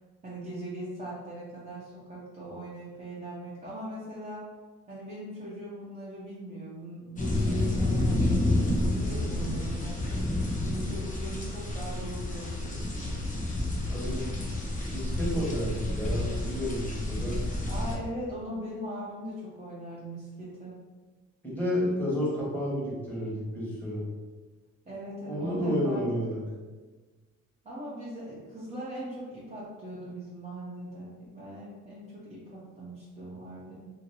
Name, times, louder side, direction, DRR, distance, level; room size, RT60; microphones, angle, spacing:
voice 1, 0.2-4.4 4.9-9.9 10.6-13.2 17.7-20.8 24.9-26.0 27.6-33.8, right 1 dB, 20° right, -8 dB, 0.8 m, -40 dB
sound 1, 7.2-17.9, left 1 dB, 25° left, 0.7 m, -29 dB
voice 2, 13.9-14.3 14.9-17.4 21.4-24.0 25.3-26.4, equal, 5° left, -7 dB, 1.4 m, -31 dB
2.8 x 2.7 x 2.8 m, 1.3 s
cardioid pair, 90°, 30 cm